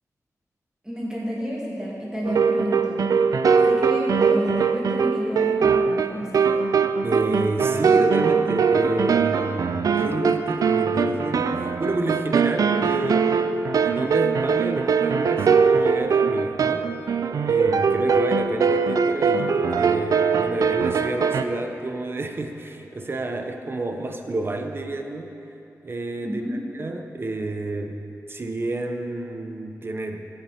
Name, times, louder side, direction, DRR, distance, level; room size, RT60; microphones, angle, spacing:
voice 1, 0.8-3.1 3.7-6.5 26.2-26.6, equal, 10° right, -6 dB, 2.6 m, -30 dB
sound 1, 2.2-21.4, right 5 dB, 80° right, 0.4 m, -21 dB
voice 2, 7.0-13.3 13.8-16.9 17.4-25.3 25.8-28.0 28.3-30.2, right 2 dB, 40° right, 5 dB, 0.8 m, -29 dB
14.5 x 7.6 x 4.3 m, 3.0 s
wide cardioid pair, 95°, 6 cm